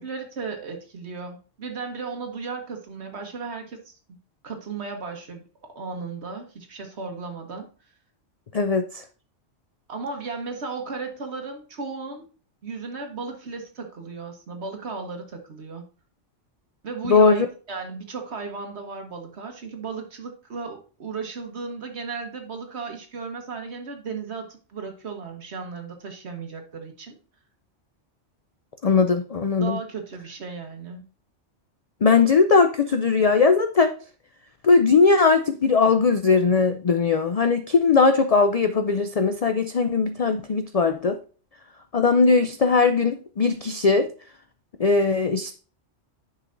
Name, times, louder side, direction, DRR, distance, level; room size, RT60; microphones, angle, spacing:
voice 1, 0.0-4.2 4.4-5.4 5.7-7.7 9.9-12.3 12.6-15.8 16.8-27.2 29.6-31.1, right 4 dB, 60° right, 4 dB, 1.5 m, -35 dB
voice 2, 8.5-9.0 17.1-17.4 28.8-29.8 32.0-33.9 34.6-41.2 41.9-44.1 44.8-45.5, left 4 dB, 60° left, 8 dB, 0.4 m, -19 dB
9.9 x 5.6 x 2.6 m, 0.37 s
omnidirectional pair, 1.2 m